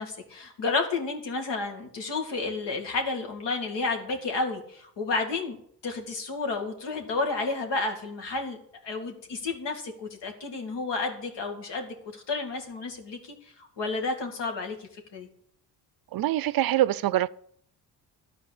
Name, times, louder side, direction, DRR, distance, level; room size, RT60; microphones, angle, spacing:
voice 1, 0.0-5.6 5.8-8.6 8.8-15.3, left 3 dB, 75° left, 2.4 m, -31 dB
voice 2, 16.1-17.3, right 14 dB, 55° right, 0.5 m, -24 dB
12.0 x 4.7 x 8.3 m
cardioid pair, 95°, 42 cm